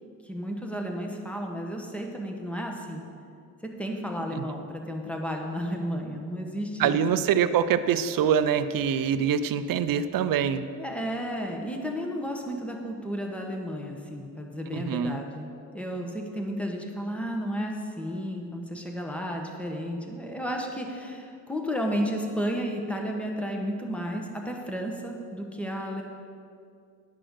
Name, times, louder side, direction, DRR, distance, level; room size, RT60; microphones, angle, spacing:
voice 1, 0.2-3.0 3.8-7.0 10.8-26.0, equal, 5° left, 1 dB, 1.3 m, -32 dB
voice 2, 6.8-10.7 14.7-15.2, right 8 dB, 80° right, 12 dB, 0.6 m, -24 dB
10.5 x 6.0 x 6.4 m, 2.4 s
cardioid pair, 105°, 33 cm